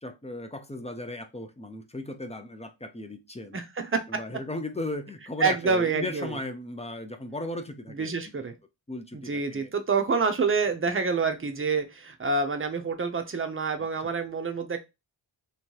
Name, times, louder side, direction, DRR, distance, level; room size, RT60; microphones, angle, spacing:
voice 1, 0.0-3.6 4.1-8.1 8.9-9.7 13.8-14.1, left 2 dB, 15° left, 0.4 m, -36 dB
voice 2, 3.5-4.0 5.4-6.3 8.0-8.5 9.1-14.8, right 4 dB, 25° right, 0.6 m, -27 dB
3.2 x 2.9 x 4.6 m
wide cardioid pair, 130°, 48 cm